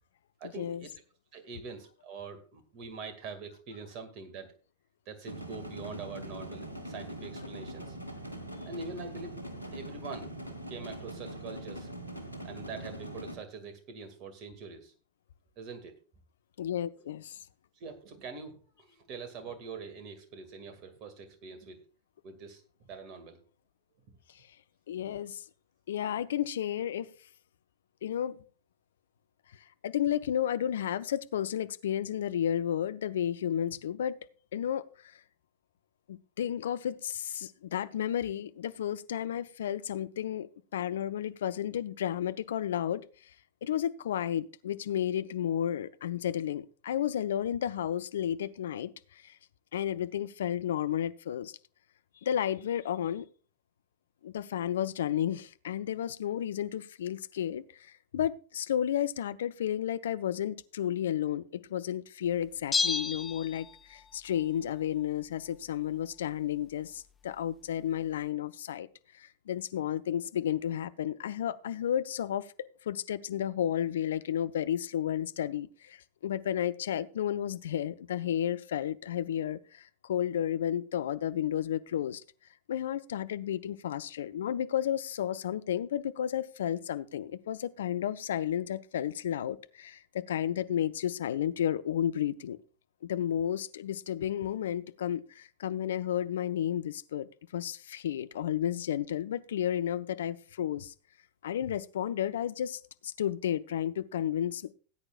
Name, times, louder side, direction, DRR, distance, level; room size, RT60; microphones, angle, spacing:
voice 1, 0.4-0.9 1.3-4.5 5.1-8.0 8.7-9.4 9.7-10.3 10.7-11.9 12.4-14.9 15.6-16.0 17.8-21.8 22.2-23.4, right 4 dB, 40° right, 2.0 m, -44 dB
sound 1, 5.3-13.3, right 1 dB, 80° right, 1.5 m, -42 dB
voice 2, 16.6-17.4 24.9-25.4 25.9-27.1 28.0-28.4 29.8-34.2 34.5-34.9 36.1-43.1 43.6-48.9 49.2-49.3 49.7-51.5 52.2-53.3 54.2-57.6 58.1-68.9 69.1-82.2 82.7-92.6 93.0-100.9 101.4-104.7, left 10 dB, 60° left, 0.5 m, -32 dB
Bell, 62.7-64.1 64.4-64.5, left 4 dB, 15° left, 0.6 m, -31 dB
18.0 x 8.7 x 2.4 m
figure-of-eight pair, 90°, 0 cm